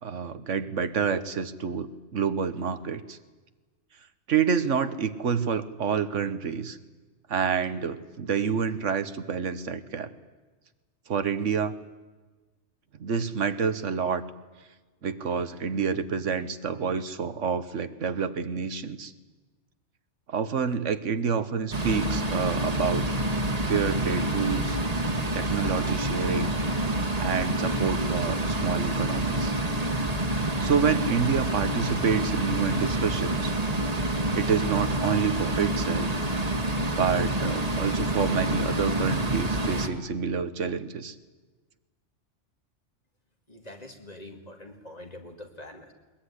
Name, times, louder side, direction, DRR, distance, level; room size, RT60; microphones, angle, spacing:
voice 1, 0.0-3.2 4.3-6.8 7.3-10.1 11.1-11.8 13.0-14.2 15.0-19.1 20.3-23.1 23.7-24.8 25.3-26.5 27.2-29.5 30.6-33.5 34.3-36.1 37.0-41.1, right 6 dB, 85° right, 11 dB, 1.5 m, -28 dB
sound 1, 21.7-39.9, right 1 dB, 30° right, 1.9 m, -27 dB
voice 2, 43.5-45.9, left 1 dB, 35° left, 3 dB, 2.6 m, -44 dB
21.5 x 21.0 x 9.9 m, 1.3 s
omnidirectional pair, 1.2 m